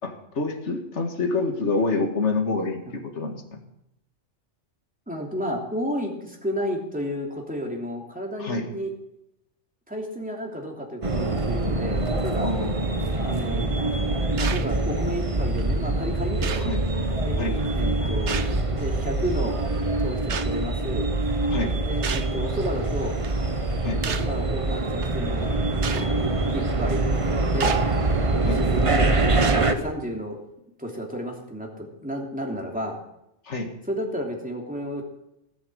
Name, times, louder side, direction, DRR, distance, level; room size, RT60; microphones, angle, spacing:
voice 1, 0.0-3.6 8.4-8.7 12.4-13.1 16.6-16.8 17.4-17.6 21.5-21.7 23.8-24.0 28.4-28.6 33.4-33.7, left 3 dB, 75° left, 3 dB, 2.2 m, -27 dB
voice 2, 5.1-8.9 9.9-12.5 13.2-16.7 17.2-18.4 18.7-19.6 20.0-21.1 21.8-23.2 24.0-27.0 27.5-27.8 28.4-30.4 30.8-33.0 33.9-35.0, equal, 5° right, -1 dB, 3.0 m, -32 dB
sound 1, 11.0-29.7, right 2 dB, 30° right, 1.0 m, -24 dB
sound 2, 14.4-14.7 15.6-15.7 16.4-16.7 18.3-18.7 20.3-20.5 22.0-22.4 23.2-23.4 24.0-24.4 25.0-25.1 25.8-26.1 27.6-27.9 28.6-28.8 29.4-29.7, right 7 dB, 70° right, 1.3 m, -32 dB
18.0 x 8.3 x 8.0 m, 0.82 s
omnidirectional pair, 1.2 m